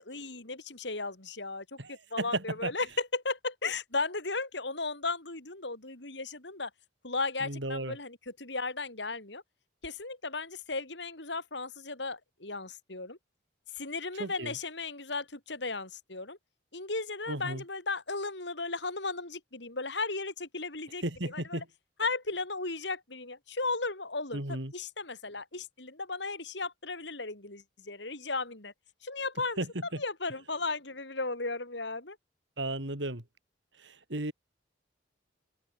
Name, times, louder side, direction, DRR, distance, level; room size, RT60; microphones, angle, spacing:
voice 1, 0.0-6.7 7.0-9.4 9.8-13.2 13.7-16.4 16.7-21.6 22.0-28.7 29.0-29.6 30.0-32.2, left 3 dB, 70° left, 4.5 m, -35 dB
voice 2, 1.8-2.7 7.4-8.0 14.2-14.5 17.3-17.6 21.0-21.7 24.3-24.7 29.6-29.7 29.9-30.0 32.6-33.2 33.8-34.3, right 2 dB, 70° right, 4.0 m, -34 dB
head